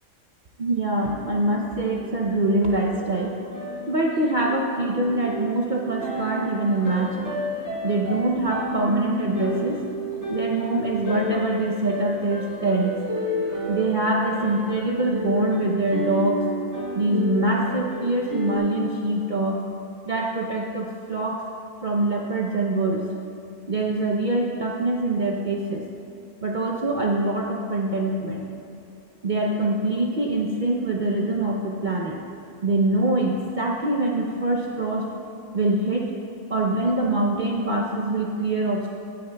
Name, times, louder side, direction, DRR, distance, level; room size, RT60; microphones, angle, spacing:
voice 1, 0.6-3.3 3.9-7.3 7.8-9.8 10.3-13.0 13.7-16.4 16.9-19.6 20.1-21.4 21.8-23.1 23.7-25.9 26.4-28.5 29.2-32.2 32.6-35.1 35.5-36.1 36.5-38.9, right 2 dB, 50° right, -1 dB, 0.6 m, -24 dB
sound 1, 1.0-18.6, equal, 15° right, 1.5 m, -32 dB
15.5 x 9.4 x 2.2 m, 2.6 s
omnidirectional pair, 1.5 m